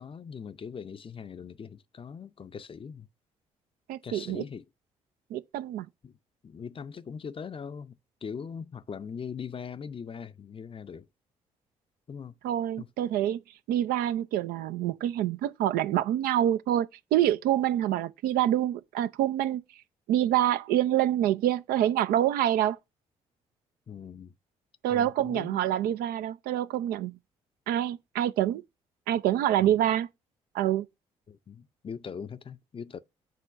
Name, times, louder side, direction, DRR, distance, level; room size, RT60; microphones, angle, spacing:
voice 1, 0.0-3.1 4.0-4.7 6.0-6.1 6.4-11.1 12.1-12.3 12.8-12.9 23.9-24.3 24.9-25.6 29.6-29.8 31.3-33.0, left 6 dB, 35° left, 0.5 m, -41 dB
voice 2, 3.9-4.4 5.3-5.9 12.4-13.4 13.7-19.6 20.1-22.8 24.8-27.1 27.7-28.6 29.1-30.1 30.5-30.9, right 12 dB, 65° right, 0.5 m, -26 dB
7.6 x 3.0 x 5.6 m
hypercardioid pair, 45°, 17 cm